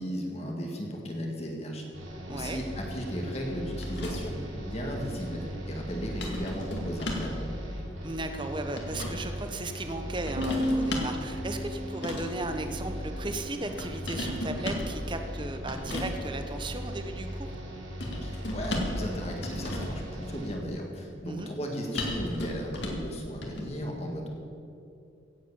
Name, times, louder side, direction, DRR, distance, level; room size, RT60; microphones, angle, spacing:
voice 1, 0.0-1.9 2.3-7.4 18.2-24.3, equal, 35° left, 0 dB, 1.8 m, -35 dB
sound 1, 1.9-20.5, equal, 85° right, 3.7 m, -39 dB
voice 2, 2.3-2.6 8.0-17.5 21.2-21.5, right 2 dB, 25° right, 7 dB, 0.8 m, -36 dB
sound 2, 3.8-4.5 6.2-7.4 8.4-9.2 10.3-11.2 11.9-12.5 13.8-14.9 15.7-16.2 18.0-19.0 19.4-20.0 21.9-23.1 23.4-23.6, left 1 dB, 65° left, 2.4 m, -35 dB
Bass guitar, 10.4-16.6, equal, 50° right, 1.2 m, -37 dB
16.5 x 8.2 x 7.1 m, 2.6 s
head